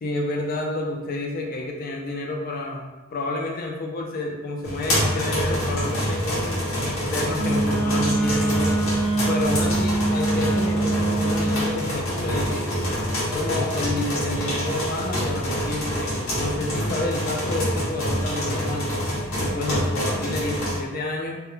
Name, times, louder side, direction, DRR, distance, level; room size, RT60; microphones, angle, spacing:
voice 1, 0.0-6.6 6.8-8.9 9.3-12.7 13.3-19.0 19.4-21.4, left 2 dB, 45° left, 0 dB, 0.4 m, -29 dB
sound 1, 4.6-20.8, equal, 70° left, 0.8 m, -26 dB
Wind instrument woodwind instrument, 7.4-11.8, right 2 dB, 90° right, 0.6 m, -24 dB
Acoustic guitar, 12.1-15.6, left 3 dB, 25° right, 0.4 m, -43 dB
2.3 x 2.1 x 3.0 m, 1.1 s
head